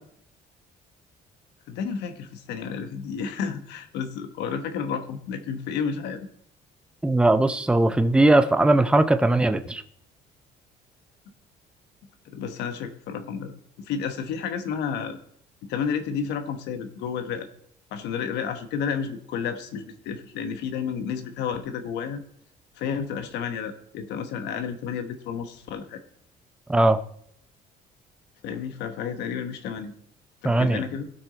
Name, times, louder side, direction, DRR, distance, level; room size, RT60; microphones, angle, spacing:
voice 1, 1.7-6.3 12.2-15.2 15.7-17.5 17.9-22.2 22.8-26.0 28.4-29.9 30.4-31.1, left 6 dB, 85° left, 7 dB, 1.2 m, -31 dB
voice 2, 7.0-9.8 26.7-27.0 30.4-30.8, right 2 dB, 5° right, 9 dB, 0.6 m, -19 dB
16.5 x 6.1 x 4.1 m, 0.65 s
cardioid pair, 110°, 17 cm